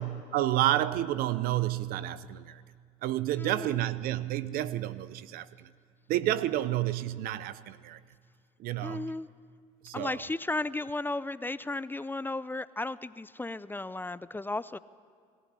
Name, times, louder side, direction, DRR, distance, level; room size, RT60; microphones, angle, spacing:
voice 1, 0.0-2.6 3.0-5.7 6.1-8.0 8.6-9.2 9.8-10.2, right 14 dB, 70° right, 16 dB, 0.7 m, -30 dB
voice 2, 3.4-3.8 8.8-9.3 9.9-14.8, left 2 dB, 15° left, 16 dB, 0.5 m, -34 dB
22.0 x 15.0 x 9.8 m, 2.1 s
supercardioid pair, 80°, 16 cm